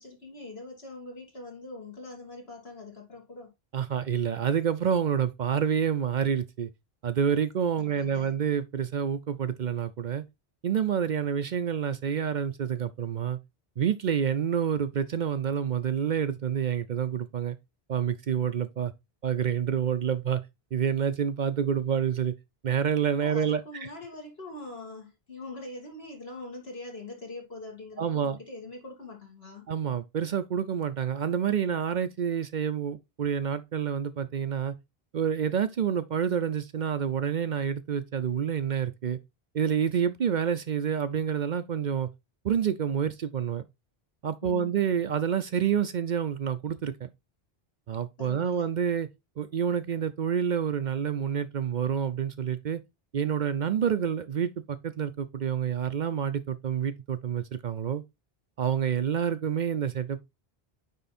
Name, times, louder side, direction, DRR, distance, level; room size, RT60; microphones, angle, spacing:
voice 1, 0.0-3.5 7.8-8.3 23.2-29.7 44.4-44.7 48.2-48.7, left 2 dB, 80° left, 2.8 m, -43 dB
voice 2, 3.7-6.7 7.0-10.2 10.6-13.4 13.8-17.6 17.9-18.9 19.2-20.4 20.7-22.3 22.6-23.9 28.0-28.4 29.7-34.7 35.1-39.2 39.5-42.1 42.4-43.7 44.2-47.1 47.9-49.1 49.4-52.8 53.1-58.0 58.6-60.2, right 8 dB, 55° right, 0.6 m, -28 dB
9.2 x 3.4 x 4.1 m
omnidirectional pair, 1.0 m